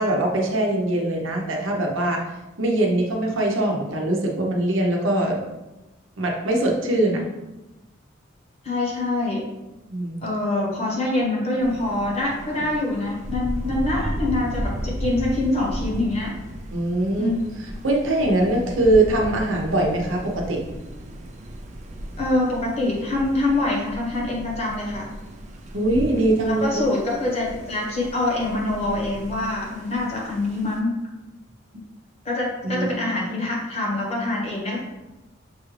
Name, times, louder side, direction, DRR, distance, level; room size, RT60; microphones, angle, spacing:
voice 1, 0.0-2.3 2.6-5.4 6.2-7.2 9.9-10.2 16.7-17.3 17.8-20.6 25.7-26.7 32.6-32.9, right 1 dB, 75° right, 0 dB, 0.8 m, -22 dB
voice 2, 8.6-9.4 10.2-16.4 17.2-17.4 22.2-25.1 26.5-30.9 32.2-34.8, left 2 dB, 30° left, -3 dB, 1.0 m, -25 dB
Thunder, 11.6-30.8, equal, 35° right, 0.4 m, -35 dB
6.3 x 2.4 x 3.2 m, 1.0 s
head